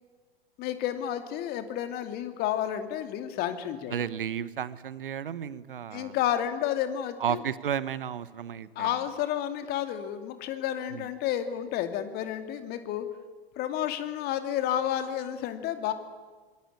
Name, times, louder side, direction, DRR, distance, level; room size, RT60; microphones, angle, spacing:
voice 1, 0.6-4.0 5.9-7.4 8.8-13.1 13.6-15.9, left 11 dB, 35° left, 9 dB, 2.7 m, -31 dB
voice 2, 3.9-6.2 7.2-9.0 10.9-11.1, right 9 dB, 65° right, 17 dB, 1.3 m, -33 dB
26.0 x 22.5 x 8.8 m, 1.4 s
figure-of-eight pair, 100°, 29 cm